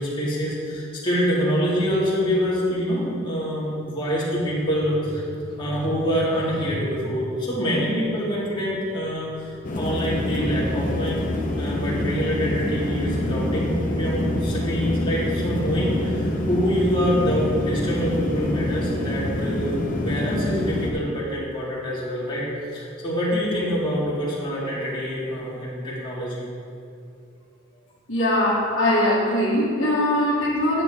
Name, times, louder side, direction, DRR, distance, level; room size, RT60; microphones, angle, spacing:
voice 1, 0.0-11.2 11.6-22.5 22.7-26.4, equal, 25° left, -7 dB, 2.3 m, -25 dB
sound 1, 9.6-20.9, left 1 dB, 40° left, 1.0 m, -26 dB
voice 2, 28.1-30.8, left 1 dB, 60° left, -11 dB, 1.9 m, -21 dB
10.0 x 7.6 x 3.7 m, 2.7 s
head